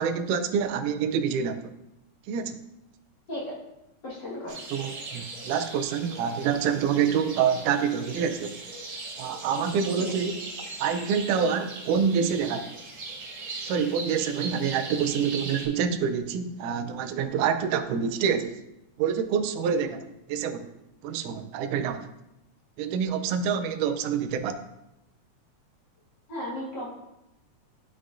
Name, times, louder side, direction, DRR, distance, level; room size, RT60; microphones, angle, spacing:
voice 1, 0.0-1.7 2.3-2.6 4.7-8.6 9.2-10.3 10.8-12.7 13.6-18.6 19.0-20.0 20.3-20.7 21.0-22.1 22.8-24.6, right 7 dB, 85° right, 9 dB, 2.1 m, -27 dB
voice 2, 4.0-4.6 10.0-10.1 19.8-19.9 26.3-26.9, left 1 dB, 40° left, -6 dB, 1.9 m, -35 dB
sound 1, 4.5-15.7, right 3 dB, 60° right, 2.6 m, -39 dB
11.5 x 4.9 x 2.6 m, 0.90 s
omnidirectional pair, 3.5 m